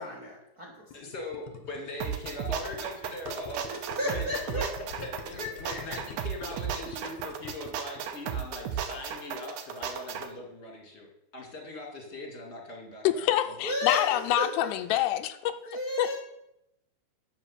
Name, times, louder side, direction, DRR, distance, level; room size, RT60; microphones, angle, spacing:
voice 1, 0.0-1.1 3.7-4.7 5.3-6.0 13.6-14.7 15.6-16.2, left 2 dB, 40° right, -1 dB, 1.2 m, -33 dB
Gurgling, 0.9-8.0, left 5 dB, 65° left, 1.8 m, -44 dB
voice 2, 0.9-4.7 5.0-11.1 11.3-13.3 13.6-13.7, left 1 dB, 25° left, 0 dB, 1.7 m, -40 dB
sound 1, 2.0-10.3, right 8 dB, 75° right, 1.8 m, -35 dB
voice 3, 13.0-15.5 16.0-16.2, left 13 dB, 90° left, 9 dB, 2.8 m, -26 dB
10.5 x 5.8 x 7.2 m, 0.85 s
omnidirectional pair, 4.7 m